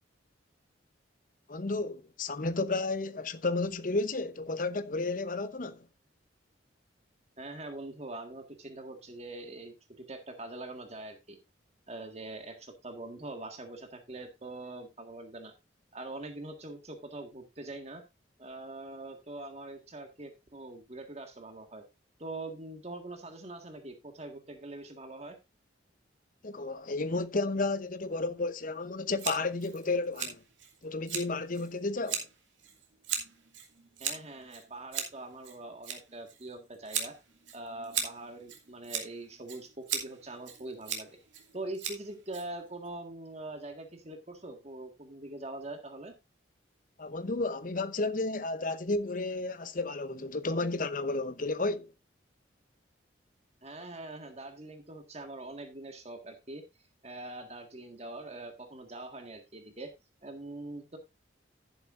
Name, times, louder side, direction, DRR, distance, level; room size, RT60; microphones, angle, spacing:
voice 1, 1.5-5.9 26.4-30.4 30.8-32.3 47.0-51.9, left 3 dB, 45° left, 0.8 m, -32 dB
voice 2, 7.4-11.4 11.9-15.5 15.9-18.0 18.4-21.8 22.2-25.4 34.0-37.2 37.5-41.2 41.5-46.1 53.6-56.6 57.0-59.9 60.2-61.0, right 2 dB, 35° right, 1.7 m, -43 dB
Scissors, 29.2-42.9, right 8 dB, 75° right, 2.7 m, -39 dB
11.5 x 10.5 x 2.5 m
head